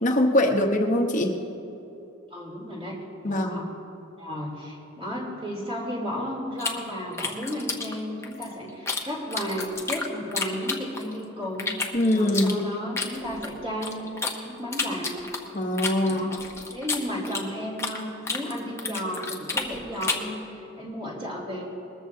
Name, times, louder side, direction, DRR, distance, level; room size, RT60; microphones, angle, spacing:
voice 1, 0.0-1.4 3.2-3.6 11.9-12.6 15.5-16.4, left 1 dB, 35° left, 3 dB, 1.0 m, -23 dB
voice 2, 2.3-3.6 4.2-11.7 12.1-14.0 14.4-15.3 16.1-16.4 16.7-21.6, equal, 25° right, -4 dB, 3.0 m, -33 dB
sound 1, 6.6-9.0 9.3-11.2 11.6-14.3 14.7-18.0 18.2-20.3, left 4 dB, 15° left, 0.8 m, -31 dB
20.5 x 14.0 x 2.8 m, 2.9 s
head